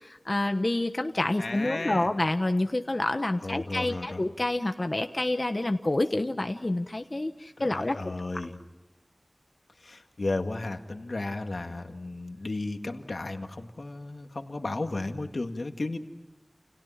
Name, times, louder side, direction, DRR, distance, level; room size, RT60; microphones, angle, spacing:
voice 1, 0.0-8.1, left 2 dB, 50° left, 7 dB, 1.2 m, -28 dB
voice 2, 1.4-2.1 3.4-4.2 7.7-8.6 9.8-16.0, left 2 dB, 85° left, 5 dB, 2.0 m, -34 dB
29.5 x 29.5 x 5.8 m, 1.0 s
wide cardioid pair, 45°, 0 cm